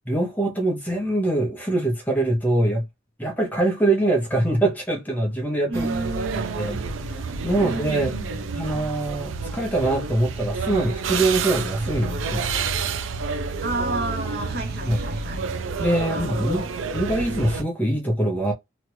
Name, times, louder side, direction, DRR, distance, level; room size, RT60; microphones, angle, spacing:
voice 1, 0.1-2.8 3.2-5.9 6.5-6.8 7.4-8.2 8.5-12.5 14.8-15.0 15.8-16.7 16.9-18.5, right 1 dB, 10° left, 0.8 m, -23 dB
voice 2, 5.7-6.9 7.6-8.6 13.6-15.5 16.1-16.7, right 2 dB, 50° right, 0.9 m, -31 dB
sound 1, 5.7-17.6, right 4 dB, 70° right, 0.5 m, -29 dB
2.9 x 2.4 x 3.0 m
head